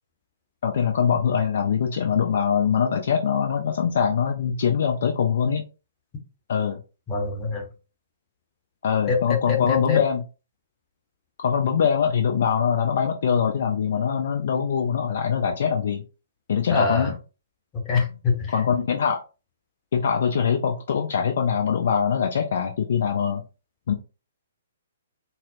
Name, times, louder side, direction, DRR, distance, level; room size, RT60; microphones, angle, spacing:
voice 1, 0.6-5.6 6.5-6.8 8.8-10.2 11.4-16.0 16.5-17.2 18.5-19.2 19.9-23.4 23.9-24.0, left 7 dB, 55° left, 4 dB, 0.4 m, -23 dB
voice 2, 7.1-7.7 9.1-10.0 16.7-17.1 17.7-18.5, left 4 dB, 20° left, 1 dB, 0.9 m, -25 dB
4.0 x 2.0 x 2.6 m, 0.32 s
figure-of-eight pair, 120°, 0 cm